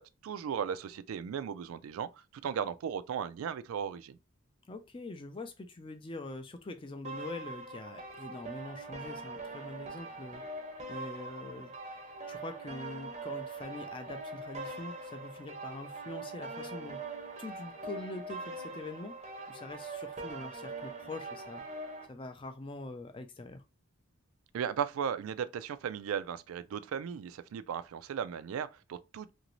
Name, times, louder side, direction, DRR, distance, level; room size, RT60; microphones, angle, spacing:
voice 1, 0.0-4.2 24.5-29.3, right 8 dB, 80° right, 0.3 m, -36 dB
voice 2, 4.7-10.4 10.9-11.7 12.3-17.0 17.4-19.2 19.5-21.6 22.1-23.6, left 2 dB, 25° left, 0.4 m, -44 dB
sound 1, 7.0-22.1, right 3 dB, 30° right, 0.6 m, -42 dB
2.9 x 2.6 x 3.0 m
head